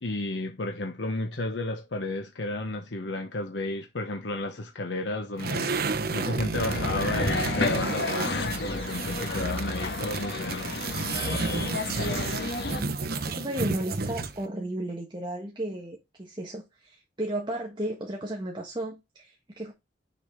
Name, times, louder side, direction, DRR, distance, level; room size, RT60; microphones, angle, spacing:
voice 1, 0.0-11.7, left 2 dB, 90° left, 1.0 m, -33 dB
sound 1, 5.4-14.5, right 3 dB, 60° right, 0.9 m, -32 dB
sound 2, 6.5-12.8, left 2 dB, 65° left, 1.5 m, -31 dB
voice 2, 12.8-19.7, right 1 dB, 25° right, 1.4 m, -34 dB
6.9 x 5.0 x 3.6 m
head